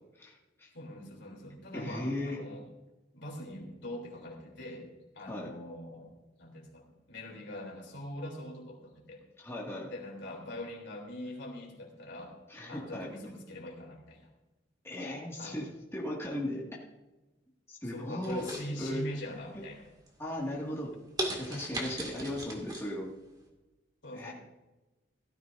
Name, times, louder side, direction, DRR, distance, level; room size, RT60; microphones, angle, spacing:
voice 1, 0.2-0.7 1.7-2.4 5.3-5.5 9.4-9.9 12.5-13.1 14.8-15.7 15.9-16.7 17.7-18.5 18.8-19.0 19.5-19.6 20.2-20.9 21.4-23.1 24.1-24.3, left 1 dB, 15° left, -5 dB, 2.2 m, -37 dB
voice 2, 0.7-2.7 3.1-4.9 5.1-9.2 9.9-12.3 12.7-14.3 15.4-15.6 17.9-19.8 24.0-24.3, left 1 dB, 65° left, 0 dB, 3.5 m, -43 dB
sound 1, 18.2-19.2 19.7-20.1 20.6-20.7 21.2-22.9 23.2-23.3, right 1 dB, 20° right, 2.3 m, -37 dB
17.0 x 14.0 x 2.7 m, 1.1 s
head